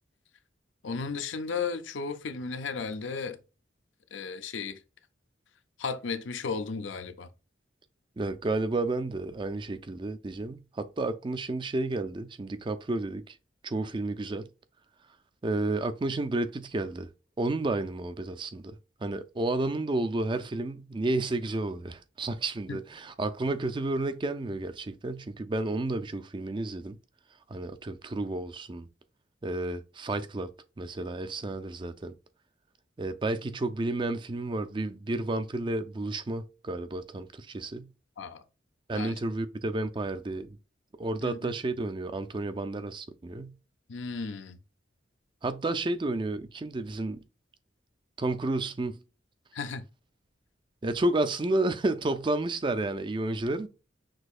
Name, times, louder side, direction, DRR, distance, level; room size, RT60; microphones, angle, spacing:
voice 1, 0.8-3.4 4.1-4.8 5.8-7.3 22.7-22.8 38.2-38.4 38.9-39.2 41.2-41.5 43.9-44.6 49.5-49.8, left 5 dB, 80° left, 0.6 m, -34 dB
voice 2, 8.2-13.3 13.6-14.5 15.4-17.1 17.4-18.8 19.0-27.0 27.5-28.9 29.4-30.5 30.8-32.1 33.0-37.9 38.9-40.6 41.0-43.6 45.4-47.2 48.2-49.0 50.8-53.7, right 2 dB, 25° right, 0.4 m, -31 dB
6.2 x 2.7 x 2.4 m
head